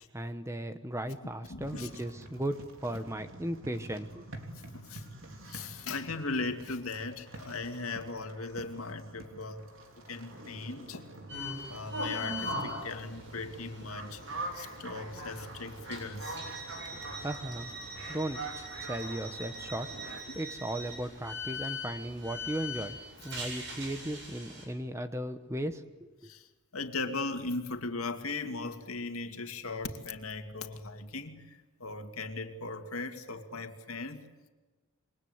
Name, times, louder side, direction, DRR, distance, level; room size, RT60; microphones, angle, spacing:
voice 1, 0.0-4.3 17.2-17.7 18.1-19.9 20.3-26.3, right 1 dB, 15° right, 9 dB, 1.1 m, -36 dB
voice 2, 1.5-1.9 4.7-5.0 5.5-9.7 10.1-11.1 11.7-14.2 14.5-16.4 20.3-20.4 26.2-26.5 26.7-34.5, left 3 dB, 85° left, 6 dB, 2.4 m, -38 dB
sound 1, 1.6-20.2, right 2 dB, 70° right, 3.5 m, -46 dB
sound 2, 11.3-24.6, left 1 dB, 55° right, 7.9 m, -41 dB
28.0 x 23.5 x 8.2 m, 1.2 s
head